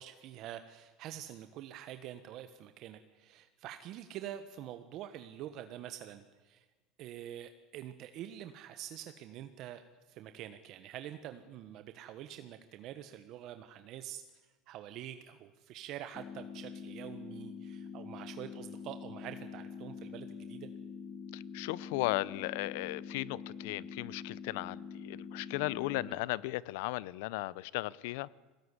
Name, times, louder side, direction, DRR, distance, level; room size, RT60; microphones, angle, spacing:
voice 1, 0.0-6.6 7.0-9.8 10.1-14.2 14.7-20.7 26.0-26.2, right 11 dB, 55° right, 9 dB, 1.3 m, -46 dB
sound 1, 16.1-26.2, left 6 dB, 20° left, 1.8 m, -45 dB
voice 2, 21.3-28.3, left 19 dB, 75° left, 22 dB, 0.7 m, -36 dB
21.5 x 18.0 x 9.9 m, 1.2 s
supercardioid pair, 125°, 0 cm